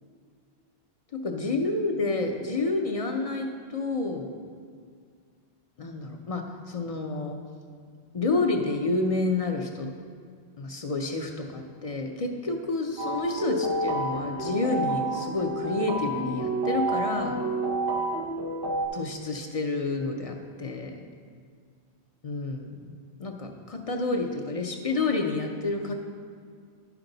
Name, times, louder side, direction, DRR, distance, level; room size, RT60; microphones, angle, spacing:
voice 1, 1.1-4.3 5.8-7.4 8.1-9.9 10.6-17.4 18.9-21.0 22.2-22.9 23.2-25.9, left 3 dB, 40° left, 3 dB, 0.6 m, -29 dB
sound 1, 13.0-18.9, right 2 dB, 25° right, 0.7 m, -29 dB
10.5 x 5.9 x 3.9 m, 2.1 s
omnidirectional pair, 1.1 m